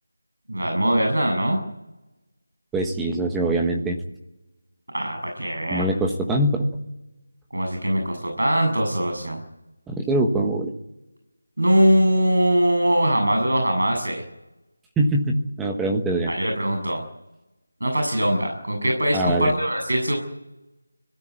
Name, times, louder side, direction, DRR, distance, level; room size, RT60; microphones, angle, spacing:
voice 1, 0.5-1.6 4.9-5.9 7.5-9.4 11.6-14.2 16.3-17.0 17.8-20.2, equal, 85° right, 3 dB, 7.6 m, -21 dB
voice 2, 2.7-4.0 5.7-6.7 9.9-10.7 15.0-16.3 19.1-19.5, right 1 dB, 5° right, 1 dB, 1.2 m, -23 dB
24.0 x 17.0 x 9.5 m, 0.98 s
figure-of-eight pair, 175°, 0 cm